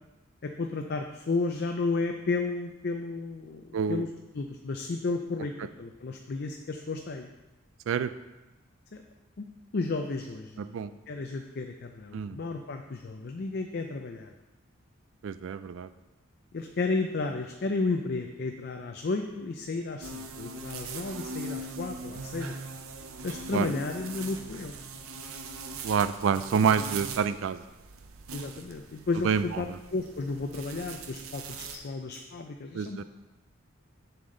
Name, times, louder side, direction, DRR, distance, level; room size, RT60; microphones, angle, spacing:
voice 1, 0.4-4.1 4.3-5.5 5.8-7.3 8.9-9.0 9.7-10.7 11.1-14.3 16.5-22.5 23.2-24.8 28.3-33.0, left 3 dB, 50° left, 4 dB, 0.4 m, -33 dB
voice 2, 3.7-4.1 7.9-8.1 10.6-10.9 12.1-12.4 15.2-15.9 23.5-23.7 25.8-27.6 29.2-29.8 32.7-33.0, right 6 dB, 65° right, 13 dB, 0.3 m, -27 dB
sound 1, 20.0-31.8, right 3 dB, 80° right, 0.7 m, -41 dB
7.3 x 7.0 x 3.8 m, 1.1 s
head